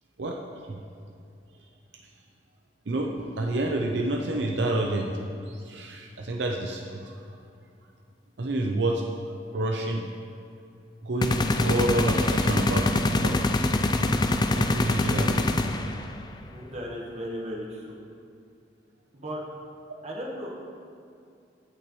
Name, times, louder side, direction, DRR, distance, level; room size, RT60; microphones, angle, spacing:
voice 1, 2.9-5.1 5.5-7.1 8.4-10.0 11.0-13.4 14.5-15.5, right 2 dB, 75° right, 1 dB, 0.6 m, -29 dB
sound 1, 11.2-16.1, left 2 dB, 25° left, 0.4 m, -24 dB
voice 2, 16.4-18.0 19.1-19.4 20.0-20.6, equal, 35° right, -2 dB, 1.4 m, -36 dB
16.5 x 6.1 x 3.1 m, 2.5 s
head